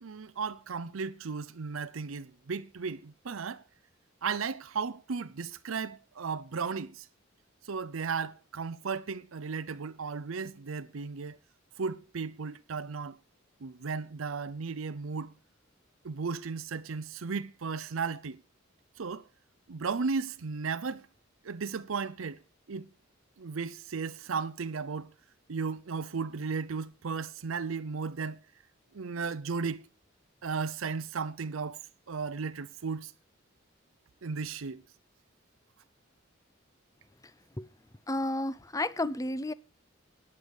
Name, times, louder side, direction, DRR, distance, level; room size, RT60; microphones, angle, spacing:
voice 1, 0.0-3.6 4.2-7.1 7.6-11.4 11.8-13.2 13.6-15.3 16.0-18.4 19.0-19.2 19.7-21.0 21.4-22.4 22.7-22.9 23.4-25.1 25.5-28.4 28.9-29.8 30.4-31.8 32.1-33.1 34.2-34.8, right 5 dB, 85° right, 0.6 m, -35 dB
voice 2, 38.1-39.5, left 1 dB, 15° left, 0.6 m, -31 dB
14.5 x 9.8 x 5.3 m
head